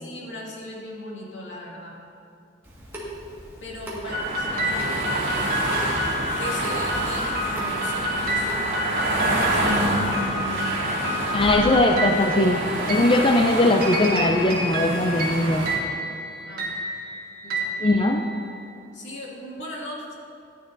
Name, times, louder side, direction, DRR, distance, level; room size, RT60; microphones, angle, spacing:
voice 1, 0.0-2.0 3.6-5.6 6.4-9.7 16.4-16.6 17.4-17.7 18.9-20.2, left 1 dB, 80° left, -4 dB, 2.1 m, -38 dB
Water tap faucet / Sink (filling or washing) / Drip, 2.6-9.8, right 1 dB, 10° right, 1.6 m, -39 dB
sound 1, 4.0-15.8, right 1 dB, 75° right, 2.0 m, -28 dB
sound 2, 4.1-18.6, equal, 55° right, 1.5 m, -29 dB
voice 2, 11.3-15.7 17.8-18.2, left 1 dB, 25° left, 3 dB, 0.4 m, -20 dB
14.0 x 9.3 x 2.6 m, 2.7 s
head